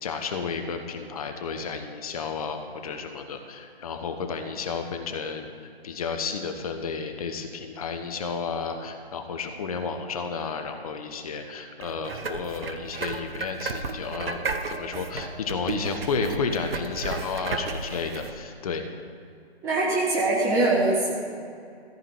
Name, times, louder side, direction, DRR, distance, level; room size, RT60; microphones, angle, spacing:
voice 1, 0.0-5.5 5.8-18.8, left 5 dB, 35° left, 5 dB, 1.0 m, -32 dB
sound 1, 11.8-18.3, right 4 dB, 65° right, 1.0 m, -33 dB
voice 2, 19.6-21.2, right 2 dB, 10° right, -3 dB, 0.7 m, -23 dB
14.5 x 4.9 x 9.3 m, 2.4 s
figure-of-eight pair, 140°, 32 cm